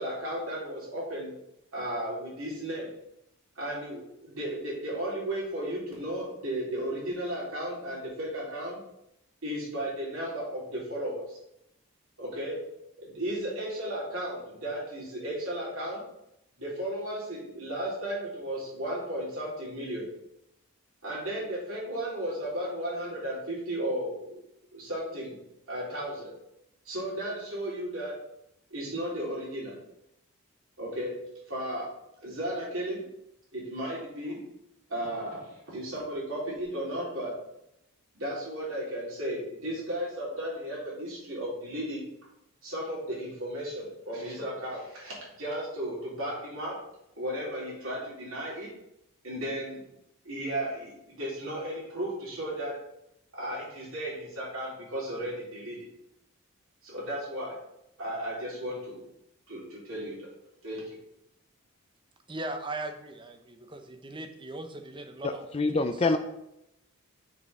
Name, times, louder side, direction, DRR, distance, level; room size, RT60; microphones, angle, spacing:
voice 1, 0.0-1.3 1.7-2.9 3.6-8.8 9.4-11.4 12.2-12.6 13.0-16.0 16.6-20.1 21.0-24.3 24.7-25.3 25.7-26.3 26.9-28.1 28.7-29.7 30.8-31.1 31.5-31.9 32.2-33.0 33.5-34.4 34.9-37.3 38.1-42.1 42.6-46.7 47.2-48.7 49.2-49.8 50.3-52.7 53.3-55.8 56.8-57.6 58.0-59.0 59.5-60.3 60.6-61.0, right 1 dB, 65° right, -5 dB, 3.6 m, -34 dB
voice 2, 62.3-65.4 65.7-65.8, right 2 dB, 20° right, 6 dB, 0.8 m, -39 dB
voice 3, 65.2-66.2, left 3 dB, 25° left, 7 dB, 0.4 m, -26 dB
6.5 x 5.5 x 6.0 m, 0.81 s
head